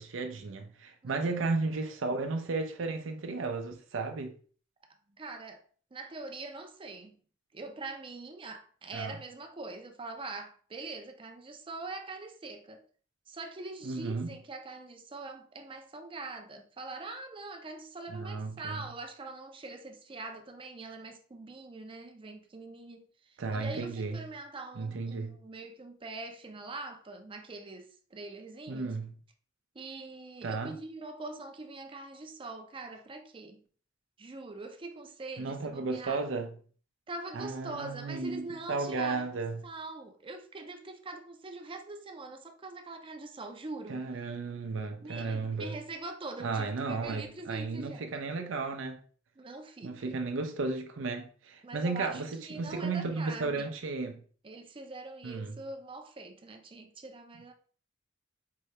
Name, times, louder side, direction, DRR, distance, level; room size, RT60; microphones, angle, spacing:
voice 1, 0.0-4.3 8.9-9.1 13.8-14.3 18.1-18.8 23.4-24.2 24.8-25.4 28.7-29.1 30.4-30.7 35.4-36.5 37.3-39.6 43.9-45.8 46.4-49.0 49.8-54.2 55.2-55.6, right 3 dB, 85° right, 0.6 m, -34 dB
voice 2, 5.1-5.6 5.9-7.2 7.5-12.8 13.3-28.9 29.7-33.6 34.2-36.2 37.1-39.3 39.6-44.1 45.0-48.2 49.4-50.1 51.6-53.7 54.4-57.5, right 3 dB, 25° right, 0.5 m, -43 dB
4.6 x 2.8 x 3.2 m
head